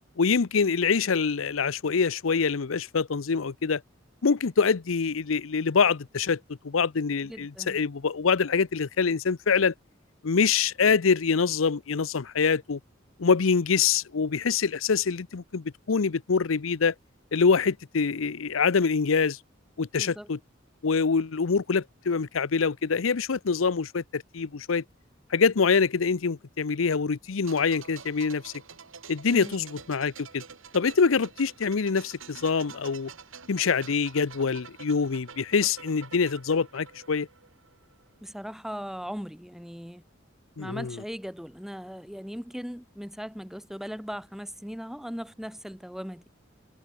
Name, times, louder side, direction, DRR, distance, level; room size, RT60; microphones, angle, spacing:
voice 1, 0.2-3.8 4.2-9.7 10.2-12.8 13.2-16.9 17.3-19.4 19.8-20.4 20.8-24.8 25.3-28.5 29.1-30.4 30.7-33.1 33.5-37.3 40.6-41.0, left 5 dB, 85° left, 0.7 m, -25 dB
voice 2, 7.2-7.8 20.0-20.3 29.3-29.6 38.2-40.0 40.6-46.2, equal, ahead, 2.1 m, -38 dB
sound 1, 27.4-38.1 38.3-38.5, right 6 dB, 85° right, 4.5 m, -48 dB
head